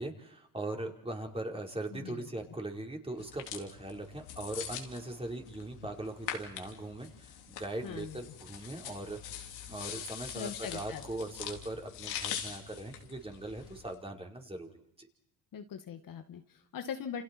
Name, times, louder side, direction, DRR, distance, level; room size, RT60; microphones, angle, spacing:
voice 1, 0.0-9.3 9.7-14.7 15.0-15.1, right 2 dB, 15° right, 1 dB, 4.6 m, -40 dB
voice 2, 1.9-2.3 7.8-8.2 10.3-11.0 15.5-17.2, left 7 dB, 55° left, 6 dB, 2.1 m, -41 dB
sound 1, 3.2-13.9, left 9 dB, 80° left, 3.8 m, -43 dB
29.0 x 29.0 x 4.6 m, 0.76 s
supercardioid pair, 80°, 40 cm